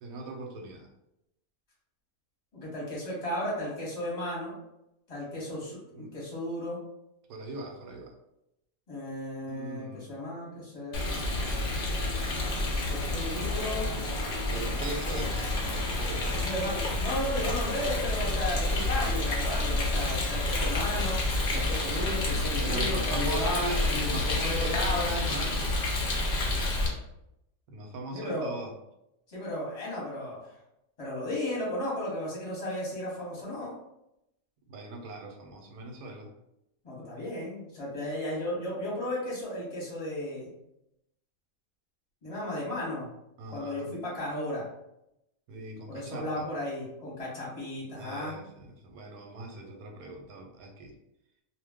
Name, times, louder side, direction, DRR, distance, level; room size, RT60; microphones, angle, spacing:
voice 1, 0.0-0.9 5.9-6.1 7.3-8.1 9.5-10.1 14.5-16.5 22.6-25.7 27.7-28.7 34.7-36.3 43.4-43.8 45.5-46.5 48.0-50.9, right 2 dB, 85° right, 3 dB, 1.1 m, -40 dB
voice 2, 2.5-4.5 5.1-6.8 8.9-11.2 12.9-14.0 16.3-21.2 21.5-25.2 28.1-28.5 29.3-30.4 31.0-33.7 36.8-40.5 42.2-43.1 43.5-44.7 45.9-48.3, left 1 dB, 25° left, -5 dB, 0.9 m, -34 dB
Rain, 10.9-26.9, left 2 dB, 55° left, 0.6 m, -29 dB
2.4 x 2.2 x 3.5 m, 0.84 s
omnidirectional pair, 1.5 m